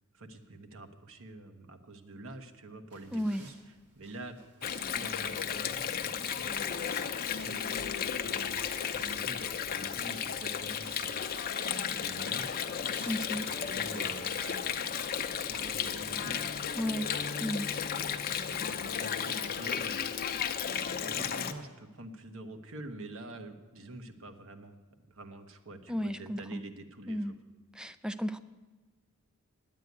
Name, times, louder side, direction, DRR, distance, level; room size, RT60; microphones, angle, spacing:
voice 1, 0.1-7.0 7.4-8.7 8.9-11.5 11.8-12.7 13.3-16.4 16.8-17.3 17.7-18.2 18.5-20.3 20.6-24.8 25.1-27.3, right 2 dB, 65° right, 7 dB, 1.1 m, -47 dB
sound 1, 2.9-18.1, right 2 dB, 85° right, 2.5 m, -56 dB
voice 2, 3.1-3.4 13.0-13.5 16.8-17.1 17.4-17.7 25.9-26.6 27.1-27.3 27.8-28.4, equal, 5° right, 12 dB, 0.3 m, -33 dB
Water, 4.6-21.5, left 7 dB, 40° left, 0.6 m, -34 dB
sound 2, 6.9-8.8 12.8-14.8 18.8-19.7, left 3 dB, 80° left, 0.5 m, -54 dB
9.5 x 9.0 x 9.6 m, 1.3 s
head